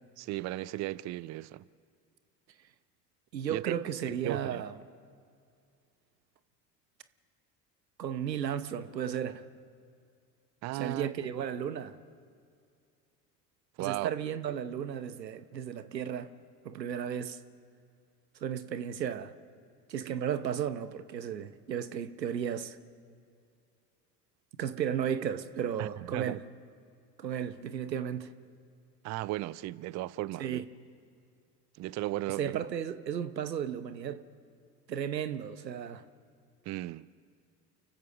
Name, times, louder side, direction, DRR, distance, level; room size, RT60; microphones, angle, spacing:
voice 1, 0.2-1.6 3.5-3.7 4.1-4.6 10.6-11.1 13.8-14.1 25.8-26.4 29.0-30.6 31.8-32.6 36.7-37.1, right 17 dB, 35° right, 0.5 m, -36 dB
voice 2, 3.3-4.8 8.0-9.4 10.7-12.0 13.8-16.3 16.6-17.4 18.4-19.3 19.9-22.8 24.6-26.5 27.2-28.3 30.4-30.6 32.4-34.2 34.9-36.0, right 8 dB, 85° right, 1.0 m, -34 dB
29.5 x 15.5 x 6.3 m
figure-of-eight pair, 65°, 49 cm